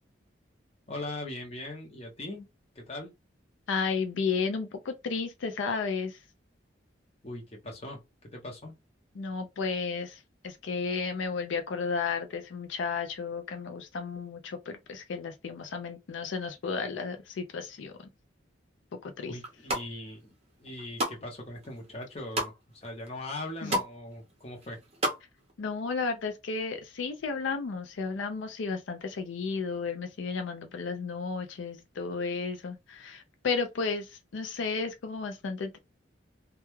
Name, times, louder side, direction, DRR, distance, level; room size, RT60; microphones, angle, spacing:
voice 1, 0.9-2.4 2.7-3.1 7.2-8.0 8.3-8.7 19.2-20.3 20.6-24.8, left 1 dB, 30° left, 0.7 m, -40 dB
voice 2, 3.7-6.2 9.2-18.1 19.0-19.4 23.6-23.8 25.6-35.8, left 5 dB, 85° left, 0.4 m, -33 dB
sound 1, 19.4-19.9 20.4-21.2 21.6-22.5 23.1-23.2 23.4-23.9 24.2-25.2 25.5-25.6, right 1 dB, 30° right, 0.6 m, -31 dB
2.2 x 2.2 x 3.0 m
head